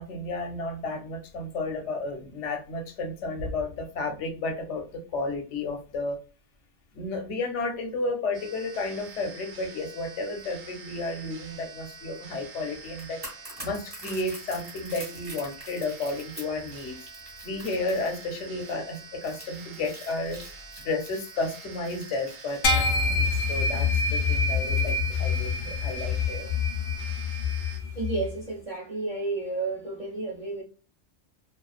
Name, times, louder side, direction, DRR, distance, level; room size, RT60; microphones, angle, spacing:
voice 1, 0.0-6.2 6.9-13.2 13.6-16.9 17.4-20.4 20.8-26.6, left 2 dB, 85° left, 1.0 m, -32 dB
sound 1, 8.3-27.8, right 4 dB, 85° right, 1.0 m, -46 dB
sound 2, 12.8-26.0 26.3-26.5, right 1 dB, 25° right, 0.9 m, -46 dB
sound 3, 22.6-28.3, left 4 dB, 60° left, 0.5 m, -26 dB
voice 2, 28.0-30.6, right 3 dB, 50° right, 0.4 m, -31 dB
2.4 x 2.3 x 2.3 m
omnidirectional pair, 1.2 m